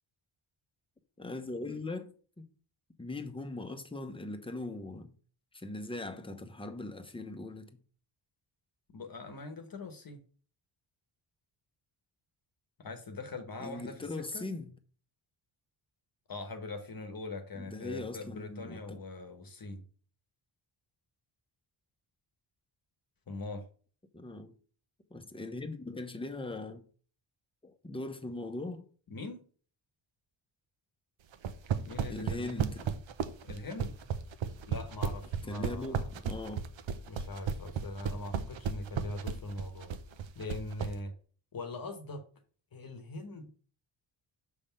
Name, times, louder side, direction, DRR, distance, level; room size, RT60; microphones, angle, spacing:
voice 1, 1.2-2.4 3.0-5.1 5.5-7.7 13.6-14.7 17.6-19.0 24.1-24.5 25.1-26.8 27.6-28.9 32.1-32.8 35.5-36.7, left 2 dB, 10° left, 0.9 m, -40 dB
voice 2, 8.9-10.2 12.8-14.5 16.3-19.8 23.3-23.6 29.1-29.4 31.8-32.6 33.4-33.9 34.7-36.1 37.0-39.9 40.3-41.1 41.5-42.2 42.7-43.5, left 2 dB, 45° left, 1.1 m, -42 dB
sound 1, 31.3-40.9, right 7 dB, 65° right, 0.8 m, -33 dB
6.6 x 3.5 x 5.7 m
wide cardioid pair, 110°, 50 cm